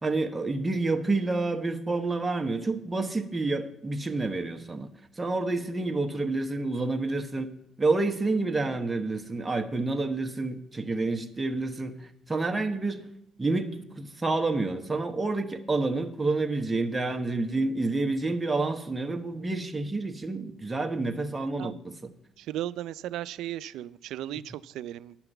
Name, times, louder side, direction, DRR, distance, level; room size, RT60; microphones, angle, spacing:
voice 1, 0.0-4.9 5.2-7.5 7.8-13.1 13.4-22.1, right 3 dB, 20° right, 1.1 m, -29 dB
voice 2, 21.4-21.8 22.4-25.2, right 12 dB, 90° right, 0.3 m, -36 dB
11.0 x 5.8 x 8.0 m
cardioid pair, 90°, 0 cm